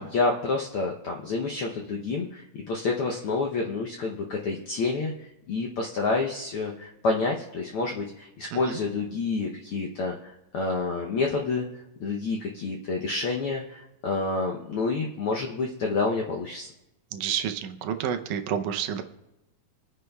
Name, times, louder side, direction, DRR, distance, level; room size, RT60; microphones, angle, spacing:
voice 1, 0.0-11.7 12.0-16.7, left 3 dB, 75° left, 0 dB, 1.2 m, -28 dB
voice 2, 17.1-19.0, right 9 dB, 80° right, 6 dB, 2.1 m, -29 dB
26.0 x 9.4 x 2.3 m, 0.94 s
omnidirectional pair, 3.5 m